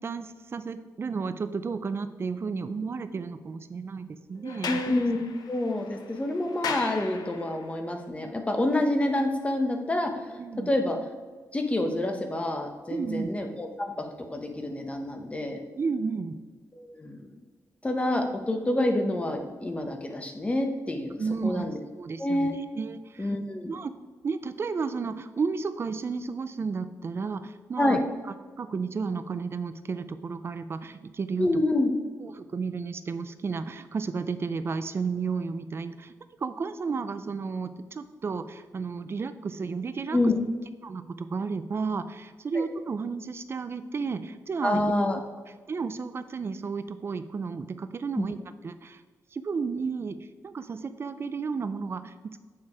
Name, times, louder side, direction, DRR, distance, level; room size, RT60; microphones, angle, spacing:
voice 1, 0.0-4.8 10.4-10.8 12.9-13.3 15.8-16.4 21.2-21.7 22.0-22.5 22.7-23.3 23.7-23.9 24.2-28.0 28.6-31.6 32.2-36.1 36.4-40.2 40.8-44.9 45.7-48.4 48.6-49.0 49.3-52.4, right 5 dB, 40° right, 11 dB, 0.4 m, -32 dB
Sliding door, 4.4-7.7, left 5 dB, 85° left, 0.6 m, -37 dB
voice 2, 4.7-5.2 5.5-10.1 10.7-11.0 11.5-15.6 16.7-17.2 17.8-21.8 22.2-22.6 23.2-23.7 27.8-28.0 31.4-31.9 40.1-40.3 42.5-42.6 44.6-45.2 48.2-48.3, left 1 dB, 20° left, 5 dB, 0.8 m, -27 dB
7.4 x 4.6 x 4.8 m, 1.4 s
wide cardioid pair, 135°, 7 cm